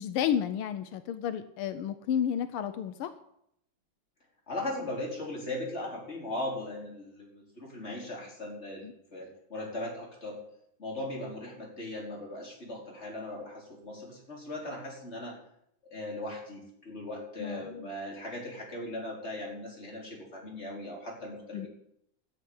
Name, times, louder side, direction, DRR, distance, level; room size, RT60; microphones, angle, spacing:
voice 1, 0.0-3.1 8.8-8.9 17.4-17.9 21.5-21.7, left 9 dB, 85° left, 11 dB, 1.6 m, -31 dB
voice 2, 4.5-10.4 10.8-15.4 15.8-21.7, left 1 dB, 30° left, -2 dB, 4.5 m, -38 dB
13.5 x 8.1 x 8.7 m, 0.75 s
omnidirectional pair, 2.3 m